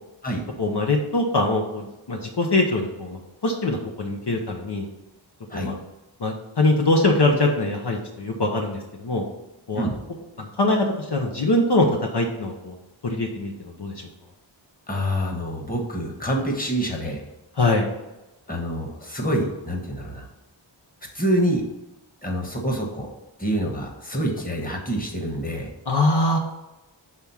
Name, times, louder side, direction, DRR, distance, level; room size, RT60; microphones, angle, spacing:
voice 1, 0.6-4.9 5.5-5.8 6.2-9.2 9.7-9.9 10.4-12.8 13.0-13.9 17.6-17.9 25.9-26.4, left 2 dB, 60° left, 1 dB, 1.0 m, -23 dB
voice 2, 14.9-17.2 18.5-20.3 21.1-21.6 22.2-23.1 23.4-25.7, equal, 20° left, 0 dB, 1.4 m, -26 dB
6.5 x 3.6 x 5.7 m, 0.99 s
wide cardioid pair, 70°, 47 cm